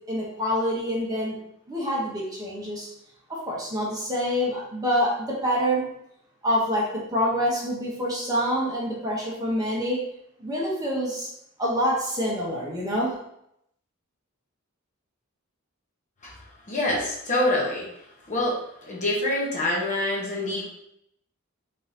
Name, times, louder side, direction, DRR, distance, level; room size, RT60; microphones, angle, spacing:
voice 1, 0.1-1.4 1.7-2.9 3.3-5.8 6.4-10.0 10.4-11.3 11.6-13.1, equal, 20° right, -5 dB, 1.0 m, -26 dB
voice 2, 16.7-17.9 18.3-20.7, left 1 dB, 35° left, -4 dB, 1.0 m, -26 dB
3.9 x 3.7 x 2.8 m, 0.76 s
head